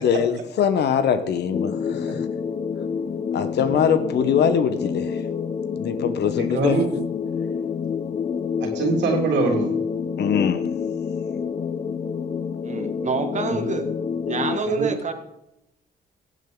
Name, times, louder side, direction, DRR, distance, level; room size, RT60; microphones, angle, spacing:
voice 1, 0.0-2.2 3.3-5.2 5.8-6.8 10.2-10.7, left 7 dB, 65° left, 1.2 m, -22 dB
sound 1, 1.5-14.6, left 6 dB, 35° left, 0.6 m, -28 dB
voice 2, 6.5-6.9 8.6-9.8 13.5-13.6 14.6-14.9, right 4 dB, 75° right, 2.8 m, -24 dB
voice 3, 12.6-13.9 14.3-15.1, right 4 dB, 40° right, 1.8 m, -27 dB
17.0 x 7.5 x 3.9 m
supercardioid pair, 75°, 19 cm